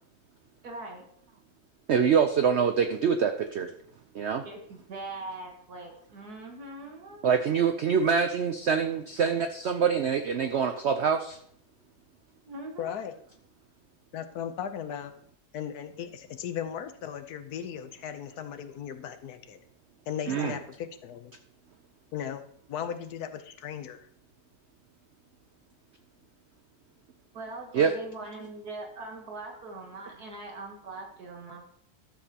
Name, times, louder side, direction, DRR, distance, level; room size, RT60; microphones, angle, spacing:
voice 1, 0.6-1.0 4.4-7.3 12.5-13.0 20.2-20.5 27.3-31.7, right 2 dB, 65° right, 1 dB, 1.8 m, -41 dB
voice 2, 1.9-3.7 4.1-4.5 7.2-11.4 20.3-20.5 27.7-27.9, right 6 dB, 80° right, 7 dB, 0.6 m, -25 dB
voice 3, 12.8-13.2 14.1-15.1 15.5-19.6 20.1-21.3 22.1-22.4 22.7-24.0, left 9 dB, 70° left, 9 dB, 1.2 m, -37 dB
13.0 x 7.2 x 2.8 m, 0.65 s
omnidirectional pair, 1.8 m